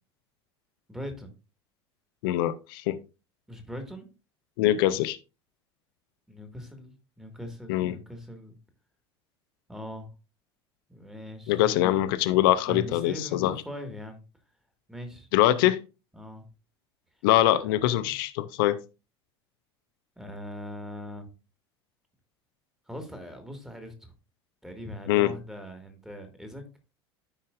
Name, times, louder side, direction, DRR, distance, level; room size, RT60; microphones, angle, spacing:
voice 1, 0.9-1.3 3.5-4.1 6.3-8.6 9.7-10.1 10.9-11.9 12.7-14.2 14.9-15.3 16.1-16.5 17.5-18.2 20.2-21.3 22.9-24.1 24.6-26.6, equal, 5° right, 6 dB, 1.8 m, -41 dB
voice 2, 2.2-3.0 4.6-5.2 7.7-7.9 11.5-13.5 15.3-15.8 17.2-18.8 25.1-25.3, left 14 dB, 55° left, 12 dB, 0.6 m, -23 dB
13.0 x 5.4 x 2.4 m, 0.30 s
figure-of-eight pair, 70°, 14 cm